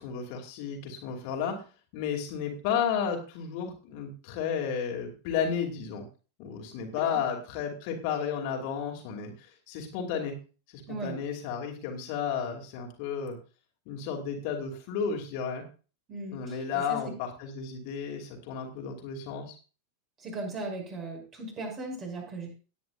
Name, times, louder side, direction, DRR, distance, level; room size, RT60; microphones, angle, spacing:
voice 1, 0.0-1.6 1.9-6.0 6.4-10.3 10.7-13.4 13.9-15.6 16.3-19.5, left 7 dB, 45° left, 1 dB, 2.7 m, -33 dB
voice 2, 10.9-11.2 16.1-17.0 20.2-22.5, right 2 dB, 30° right, 1 dB, 5.9 m, -37 dB
19.0 x 9.4 x 2.5 m, 0.34 s
figure-of-eight pair, 90°, 0 cm